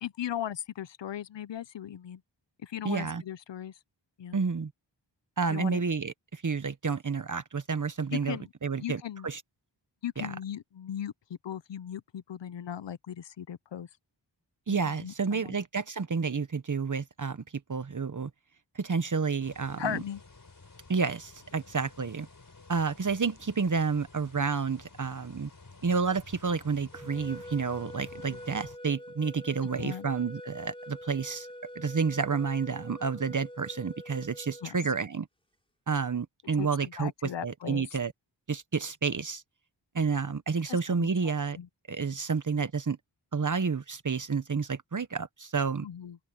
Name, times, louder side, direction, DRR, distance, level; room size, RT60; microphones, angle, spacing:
voice 1, 0.0-2.2 2.6-3.7 4.2-4.4 5.5-5.8 8.1-8.5 8.8-9.3 10.0-11.1 11.4-13.9 15.0-15.6 19.8-20.2 28.2-28.4 29.8-30.1 34.6-34.8 36.6-36.7 37.0-37.8 40.7-41.1 41.6-41.7 45.8-46.2, left 10 dB, 80° left, 0.7 m, -37 dB
voice 2, 2.8-3.2 4.3-4.7 5.4-9.4 10.2-10.3 14.7-17.4 17.7-18.3 18.7-20.0 20.9-22.3 22.7-25.5 25.8-31.5 31.7-35.3 35.9-38.1 38.5-39.4 39.9-41.6 41.9-43.0 43.3-45.9, right 5 dB, 45° right, 1.0 m, -30 dB
sound 1, 19.4-28.8, left 3 dB, 50° left, 4.3 m, -52 dB
sound 2, 26.9-34.7, equal, 10° left, 4.3 m, -45 dB
wide cardioid pair, 80°, 44 cm